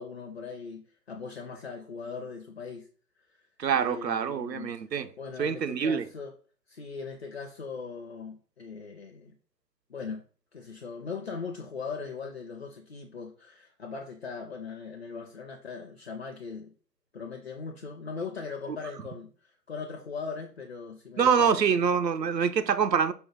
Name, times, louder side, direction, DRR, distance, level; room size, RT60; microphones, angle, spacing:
voice 1, 0.0-2.9 3.7-4.7 5.2-6.3 6.7-9.3 9.9-10.2 10.5-16.7 17.1-19.3 19.7-21.8, left 5 dB, 40° left, 0.6 m, -39 dB
voice 2, 3.6-5.1 5.4-6.1 21.2-23.1, right 7 dB, 85° right, 0.6 m, -25 dB
5.4 x 2.1 x 4.5 m
figure-of-eight pair, 135°, 49 cm